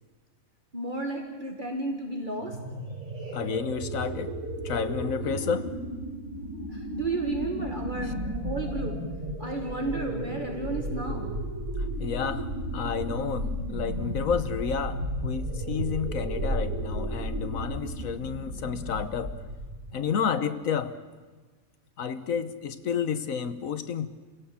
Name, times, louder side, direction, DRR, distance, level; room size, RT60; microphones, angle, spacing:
voice 1, 0.7-2.6 6.7-8.1 8.4-9.0 9.4-11.3, right 2 dB, 35° right, 2.1 m, -32 dB
sound 1, 2.4-20.0, right 1 dB, 80° right, 5.7 m, -34 dB
voice 2, 3.3-4.4 4.6-5.7 8.0-8.1 12.0-19.4 19.9-21.0 22.0-24.1, left 7 dB, 75° left, 1.4 m, -30 dB
29.5 x 17.0 x 7.1 m
omnidirectional pair, 1.4 m